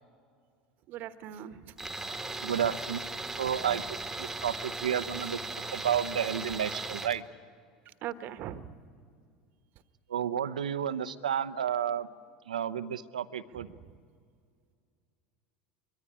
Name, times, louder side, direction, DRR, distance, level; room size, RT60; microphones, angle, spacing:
voice 1, 0.9-1.7 7.8-8.8 13.5-13.9, right 11 dB, 50° right, 12 dB, 1.2 m, -41 dB
Tools, 1.8-7.2, right 3 dB, 5° right, 1.5 m, -38 dB
voice 2, 2.4-3.0 3.4-3.8 4.2-7.2 10.1-12.1 12.5-13.7, right 9 dB, 75° right, 13 dB, 0.8 m, -31 dB
24.5 x 21.5 x 9.9 m, 2.2 s
figure-of-eight pair, 75°, 4 cm